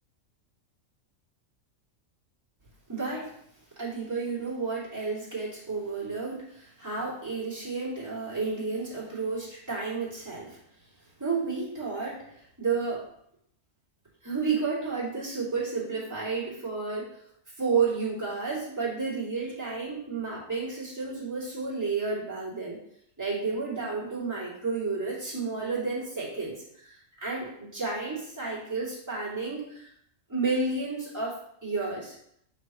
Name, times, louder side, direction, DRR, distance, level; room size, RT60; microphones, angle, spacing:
voice 1, 2.9-3.3 3.8-10.6 11.2-13.1 14.2-17.1 17.6-22.8 23.2-29.9 30.3-32.2, right 4 dB, 15° right, -9 dB, 2.7 m, -31 dB
9.0 x 4.2 x 3.1 m, 0.70 s
omnidirectional pair, 1.4 m